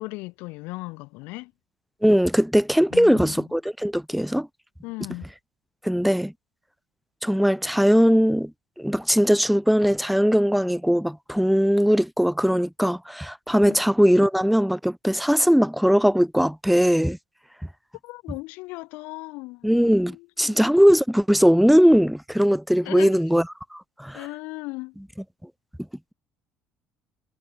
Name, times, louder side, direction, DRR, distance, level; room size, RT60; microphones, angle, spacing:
voice 1, 0.0-1.5 2.9-3.5 4.8-5.3 13.6-13.8 18.0-19.7 20.1-20.6 22.8-23.2 24.1-25.0, left 24 dB, 80° left, 6.8 m, -36 dB
voice 2, 2.0-4.5 5.8-6.3 7.2-8.5 8.8-17.2 19.6-23.5 23.7-24.3, equal, ahead, 1.0 m, -20 dB
supercardioid pair, 75°, 3 cm